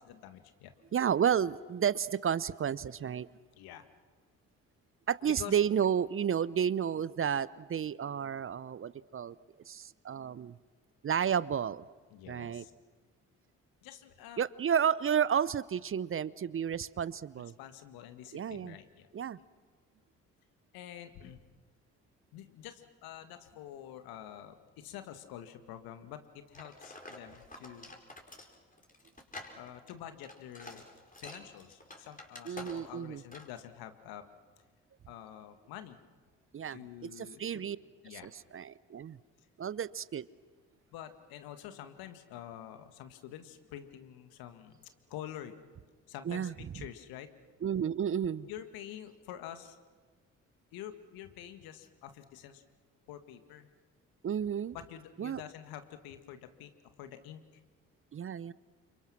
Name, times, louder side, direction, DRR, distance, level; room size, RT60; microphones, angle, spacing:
voice 1, 0.2-0.7 3.6-3.8 5.3-5.6 12.1-12.7 13.8-14.4 17.4-19.1 20.7-21.4 22.3-27.9 29.6-30.8 31.2-34.3 35.1-36.0 36.7-37.6 38.0-38.3 40.9-45.6 46.1-47.3 48.5-49.8 50.7-52.6 53.1-53.7 54.7-56.7 57.0-57.4, left 11 dB, 70° left, 9 dB, 1.8 m, -47 dB
voice 2, 0.9-3.3 5.1-9.4 9.7-10.6 11.0-11.8 12.3-12.6 14.4-17.5 18.3-18.8 19.1-19.4 32.5-33.2 36.5-36.8 37.2-37.8 38.1-39.2 39.6-40.3 46.3-46.5 47.6-48.5 54.2-54.8 55.2-55.4 58.1-58.5, right 8 dB, 35° right, 20 dB, 0.7 m, -31 dB
sound 1, 26.5-33.0 33.3-33.6, left 2 dB, 20° left, 5.2 m, -49 dB
29.5 x 26.5 x 6.1 m, 1.4 s
figure-of-eight pair, 45°, 38 cm